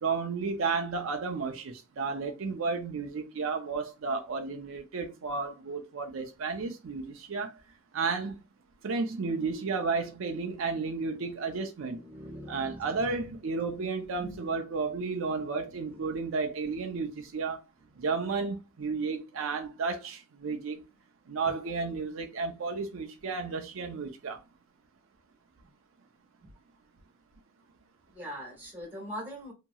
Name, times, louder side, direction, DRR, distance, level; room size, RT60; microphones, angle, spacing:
voice 1, 0.0-7.5 7.9-8.4 8.8-12.0 12.5-17.6 18.0-20.8 21.3-24.4, right 4 dB, 70° right, 0.5 m, -32 dB
voice 2, 11.9-13.3 14.2-14.4 15.7-16.2 17.8-18.0 18.8-18.9 21.5-21.6 26.4-26.5 28.1-29.5, equal, 10° right, 1.3 m, -43 dB
2.9 x 2.7 x 2.3 m
head